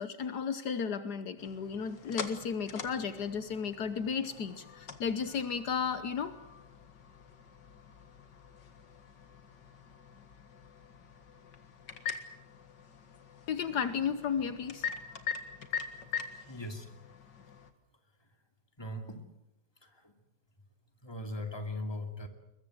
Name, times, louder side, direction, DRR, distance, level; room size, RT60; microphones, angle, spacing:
voice 1, 0.0-6.6 13.5-15.2, left 6 dB, 70° left, 11 dB, 1.6 m, -34 dB
sound 1, 1.4-17.7, left 6 dB, 85° left, 2.4 m, -44 dB
voice 2, 16.5-16.9 18.8-19.2 19.8-20.1 21.0-22.3, left 1 dB, 15° left, 5 dB, 2.6 m, -39 dB
22.0 x 21.5 x 7.9 m, 0.91 s
omnidirectional pair, 1.9 m